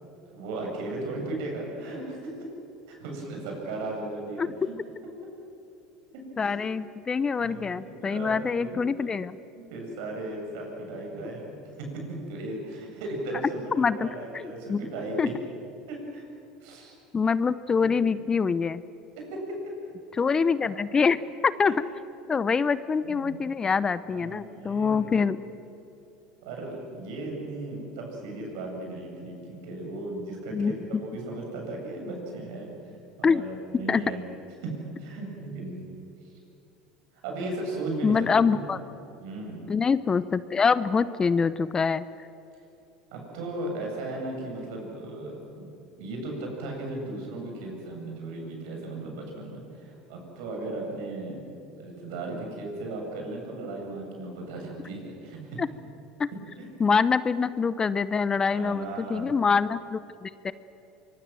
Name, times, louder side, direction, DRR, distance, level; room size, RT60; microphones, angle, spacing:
voice 1, 0.3-2.3 2.9-4.7 6.4-6.6 7.4-8.8 9.5-15.3 15.9-16.2 16.6-17.0 17.8-17.9 19.2-19.6 20.6-20.8 23.0-23.4 24.1-25.2 26.4-32.7 33.2-34.2 34.6-35.9 37.2-38.3 38.5-38.6 39.2-39.7 43.1-45.7 46.0-51.4 51.7-55.6 56.6-56.7 58.5-59.3, right 2 dB, 70° right, 0 dB, 8.0 m, -36 dB
voice 2, 6.4-9.4 13.8-14.1 14.3-14.8 15.2-15.3 17.1-18.8 20.2-21.2 21.4-21.7 22.3-25.4 30.5-30.7 33.2-33.4 33.9-34.0 38.0-38.8 39.7-42.0 55.6-55.7 56.2-56.3 56.8-60.5, left 5 dB, 25° left, 16 dB, 0.8 m, -25 dB
24.5 x 23.0 x 7.7 m, 2.9 s
hypercardioid pair, 85°, 3 cm